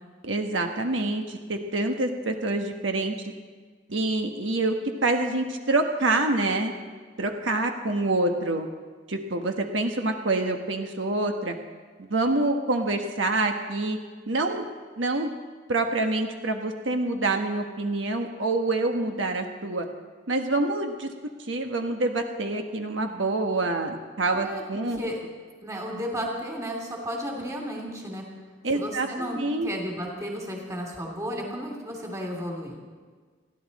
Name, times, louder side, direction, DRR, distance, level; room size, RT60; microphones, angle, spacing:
voice 1, 0.2-3.1 3.9-4.7 5.0-6.7 7.2-8.7 9.1-11.5 12.1-14.0 14.3-14.7 15.0-15.3 15.7-19.8 20.3-21.1 21.5-25.0 28.6-29.7, right 2 dB, 80° right, 4 dB, 1.3 m, -26 dB
voice 2, 25.6-28.2 28.7-29.4 29.6-32.8, equal, 15° right, 0 dB, 2.7 m, -33 dB
30.0 x 11.0 x 4.2 m, 1.5 s
head